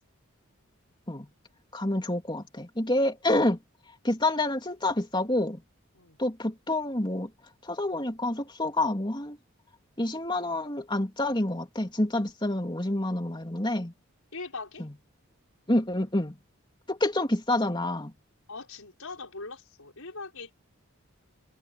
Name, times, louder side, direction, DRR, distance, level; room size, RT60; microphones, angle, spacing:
voice 1, 1.7-3.6 4.0-5.6 6.2-7.3 7.6-9.4 10.0-13.9 14.8-14.9 15.7-16.4 16.9-18.1, left 1 dB, 20° left, 3.1 m, -28 dB
voice 2, 14.3-14.9 18.5-20.5, left 3 dB, 80° left, 5.7 m, -41 dB
head